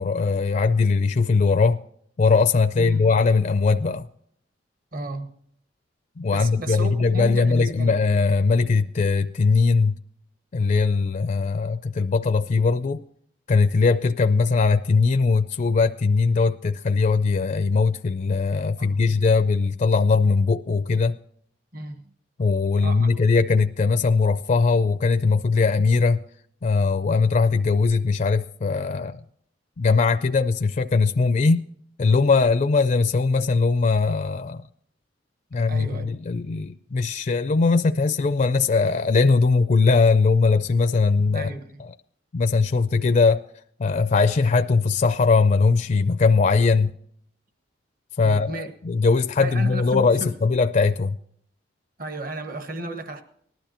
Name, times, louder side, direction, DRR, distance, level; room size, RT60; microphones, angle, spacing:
voice 1, 0.0-1.8 2.2-4.1 6.2-10.0 10.5-13.0 13.5-21.1 22.4-26.2 26.6-29.2 29.8-31.7 32.0-34.6 35.5-41.5 42.3-43.4 43.8-46.9 48.2-51.2, left 4 dB, 40° left, 0.4 m, -20 dB
voice 2, 2.8-3.2 4.9-5.3 6.3-7.9 18.8-19.0 21.7-22.0 22.8-23.1 35.7-36.1 41.3-41.8 48.2-48.7 49.4-50.3 52.0-53.2, right 2 dB, 50° right, 1.1 m, -33 dB
19.0 x 12.0 x 2.9 m
head